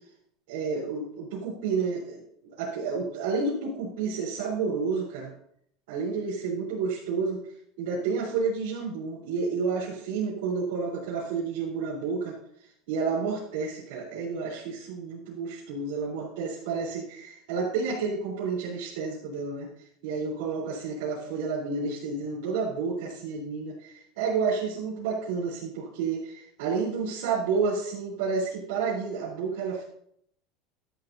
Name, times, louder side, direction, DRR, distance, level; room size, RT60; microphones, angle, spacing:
voice 1, 0.5-2.2 2.6-5.3 5.9-7.4 7.8-12.3 12.9-29.8, right 5 dB, 85° right, -8 dB, 4.3 m, -30 dB
13.0 x 12.0 x 2.9 m, 0.69 s
supercardioid pair, 165°, 0 cm